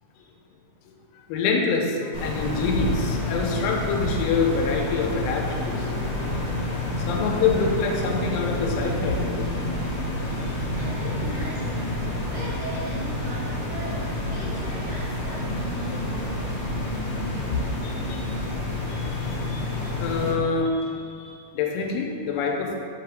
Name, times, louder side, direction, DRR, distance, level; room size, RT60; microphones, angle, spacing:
voice 1, 1.3-6.5 7.1-9.5 17.8-18.3 18.9-22.8, left 4 dB, 85° left, 1 dB, 3.1 m, -26 dB
sound 1, 2.1-20.3, left 1 dB, 60° left, 1.5 m, -28 dB
sound 2, 7.4-16.9, right 4 dB, 80° right, 2.7 m, -41 dB
voice 2, 10.4-16.3, equal, 60° right, -11 dB, 2.7 m, -39 dB
7.4 x 5.8 x 3.5 m, 2.4 s
omnidirectional pair, 5.6 m